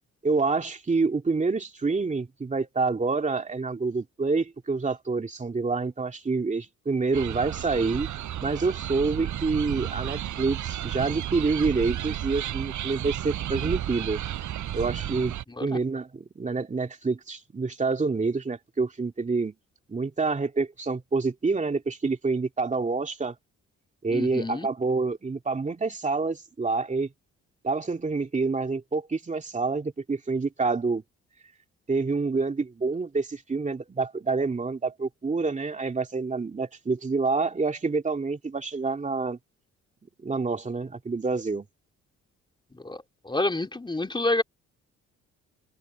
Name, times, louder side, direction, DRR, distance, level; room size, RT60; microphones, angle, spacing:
voice 1, 0.2-8.1 8.4-14.2 14.7-19.5 19.9-23.3 24.0-27.1 27.6-31.0 31.9-39.4 40.2-41.7, right 4 dB, 25° right, 2.5 m, -27 dB
sound 1, 7.1-15.4, right 12 dB, 75° right, 6.2 m, -32 dB
voice 2, 24.1-24.7 42.8-43.0 43.3-44.4, left 2 dB, 15° left, 3.0 m, -28 dB
cardioid pair, 90°, 30 cm